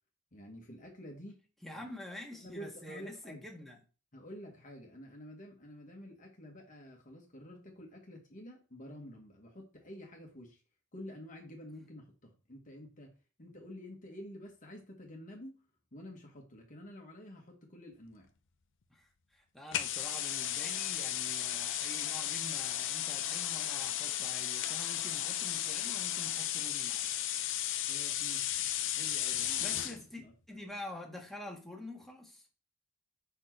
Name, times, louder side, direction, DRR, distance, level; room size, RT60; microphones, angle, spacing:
voice 1, 0.3-1.4 1.7-1.8 2.4-3.5 4.1-10.6 10.9-15.6 15.9-18.3 27.9-28.6 29.0-29.8 30.2-30.3, equal, 40° left, 1.3 m, -49 dB
voice 2, 1.6-3.8 18.9-27.1 29.6-30.2 30.5-32.5, left 1 dB, ahead, 1.6 m, -47 dB
sound 1, 19.7-30.0, left 12 dB, 60° left, 0.6 m, -34 dB
5.7 x 4.4 x 4.5 m
head